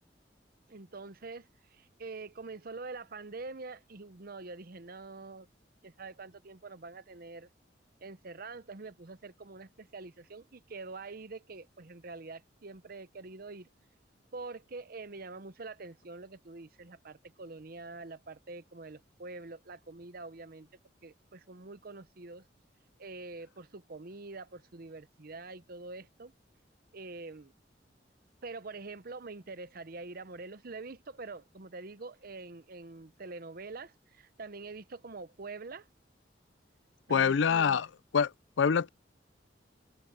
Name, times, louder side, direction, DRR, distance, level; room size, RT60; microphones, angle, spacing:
voice 1, 0.7-5.5 5.8-7.5 8.0-13.7 14.3-20.7 21.0-22.4 23.0-26.3 26.9-27.5 28.4-35.9 37.1-37.8, right 3 dB, 55° right, 0.9 m, -45 dB
voice 2, 37.1-37.9 38.1-38.3 38.6-38.9, left 6 dB, 90° left, 0.5 m, -25 dB
head